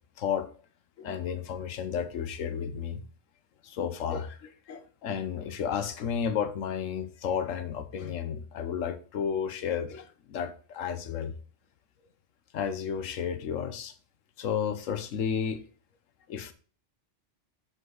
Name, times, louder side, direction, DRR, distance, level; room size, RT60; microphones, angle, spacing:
voice 1, 0.2-0.5 1.0-3.0 3.6-11.3 12.5-13.9 14.4-15.6 16.3-16.5, left 7 dB, 85° left, 1.2 m, -32 dB
8.1 x 5.2 x 3.8 m
omnidirectional pair, 1.3 m